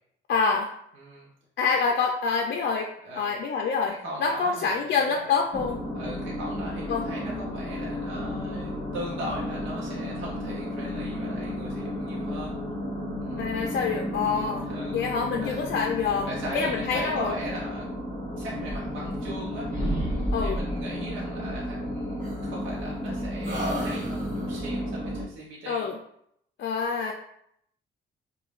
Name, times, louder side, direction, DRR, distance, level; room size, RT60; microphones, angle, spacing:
voice 1, 0.3-0.7 1.6-2.9 3.2-5.8 6.9-7.0 13.4-17.3 20.3-20.6 25.7-26.0 26.6-27.1, left 5 dB, 60° left, 1 dB, 0.4 m, -26 dB
voice 2, 1.0-1.3 3.0-3.4 3.9-5.4 5.9-12.5 13.2-13.5 14.7-15.0 15.4-15.6 16.2-17.9 18.4-19.7 20.4-25.9, right 1 dB, 80° right, -3 dB, 0.7 m, -39 dB
sound 1, 5.5-25.2, left 1 dB, 25° left, 1.0 m, -33 dB
sound 2, 18.6-19.4 19.7-20.9 22.2-23.1 23.4-24.7, equal, 40° right, 1.2 m, -32 dB
5.0 x 2.3 x 2.4 m, 0.72 s
cardioid pair, 90°, 20 cm